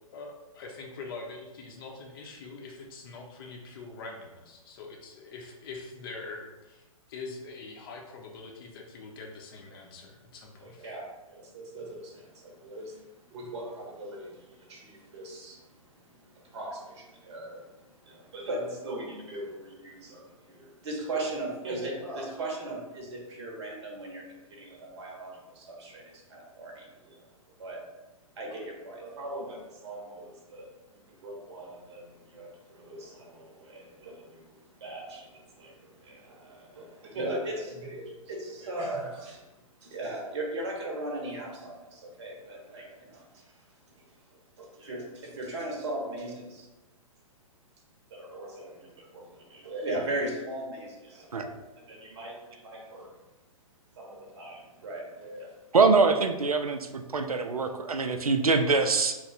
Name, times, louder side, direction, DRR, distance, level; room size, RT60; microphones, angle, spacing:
voice 1, 0.1-10.9, left 3 dB, 40° left, 1 dB, 0.7 m, -44 dB
voice 2, 10.6-27.9 28.3-39.5 39.8-43.5 43.9-44.0 44.3-46.7 48.1-53.2 54.0-55.7, right 1 dB, 50° right, 0 dB, 0.8 m, -39 dB
voice 3, 55.7-59.1, right 4 dB, 85° right, 7 dB, 0.4 m, -24 dB
3.2 x 2.1 x 3.9 m, 1.1 s
figure-of-eight pair, 120°, 18 cm